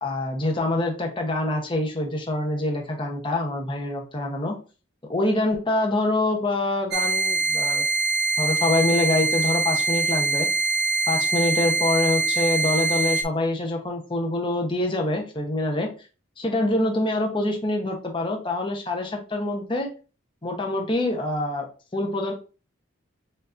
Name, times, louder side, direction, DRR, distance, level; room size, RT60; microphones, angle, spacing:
voice 1, 0.0-4.6 5.1-7.8 8.4-10.5 11.1-15.9 16.4-19.9 20.4-21.7 21.9-22.3, left 2 dB, 25° left, 2 dB, 0.9 m, -25 dB
sound 1, 6.9-13.2, right 3 dB, 50° right, 0.6 m, -23 dB
6.5 x 2.6 x 2.6 m, 0.34 s
head